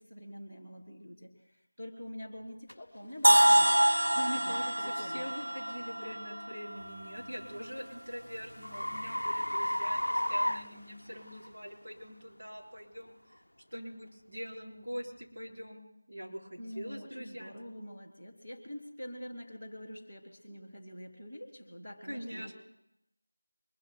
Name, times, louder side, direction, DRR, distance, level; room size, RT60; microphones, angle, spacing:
voice 1, 0.0-3.9 4.3-5.5 16.6-22.5, equal, 5° right, -13 dB, 2.6 m, -46 dB
sound 1, 2.7-2.8 3.4-3.6 4.2-4.4 7.0-11.5, equal, 80° left, 0.5 m, -34 dB
sound 2, 3.2-7.2, right 1 dB, 70° right, 0.7 m, -26 dB
voice 2, 4.1-13.2 13.7-15.8 16.1-17.7 22.1-22.5, equal, 50° right, -3 dB, 4.6 m, -43 dB
24.0 x 21.5 x 2.3 m, 0.83 s
figure-of-eight pair, 175°, 0 cm